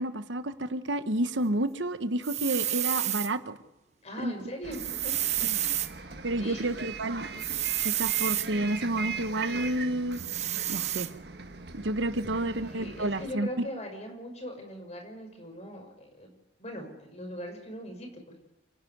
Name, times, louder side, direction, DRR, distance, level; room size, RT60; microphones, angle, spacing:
voice 1, 0.0-3.6 4.2-4.3 6.2-7.3 7.8-10.2 10.7-11.1 11.7-13.7, right 1 dB, 90° right, 11 dB, 1.2 m, -30 dB
sound 1, 2.2-3.3 4.7-5.9 7.4-8.5 10.1-11.1, right 12 dB, 40° right, 0.9 m, -30 dB
voice 2, 4.0-5.1 6.4-6.7 12.4-18.4, equal, 35° left, 3 dB, 5.9 m, -40 dB
Bus, 4.6-13.3, right 5 dB, 60° right, 1.6 m, -40 dB
29.0 x 11.0 x 9.5 m, 0.98 s
head